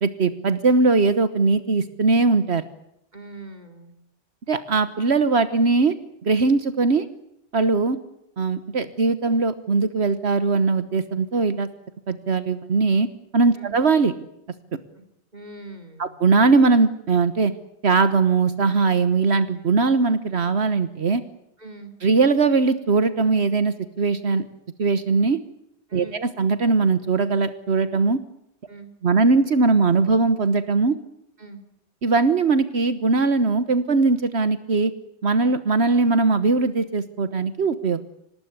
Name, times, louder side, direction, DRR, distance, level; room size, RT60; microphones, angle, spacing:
voice 1, 0.0-2.7 4.5-6.0 6.2-7.1 7.5-8.0 8.4-11.7 12.1-13.1 13.3-14.1 16.0-17.5 17.8-21.2 22.0-24.4 24.8-25.4 25.9-28.2 29.0-31.0 32.0-34.9 35.2-38.0, right 4 dB, 70° right, 12 dB, 1.5 m, -20 dB
voice 2, 3.1-3.9 13.5-13.7 14.9-15.0 15.3-16.1 21.6-21.9 25.9-26.2 28.7-28.9 31.4-31.6, right 2 dB, 40° right, 7 dB, 3.3 m, -41 dB
26.0 x 19.5 x 9.6 m, 0.78 s
omnidirectional pair, 1.2 m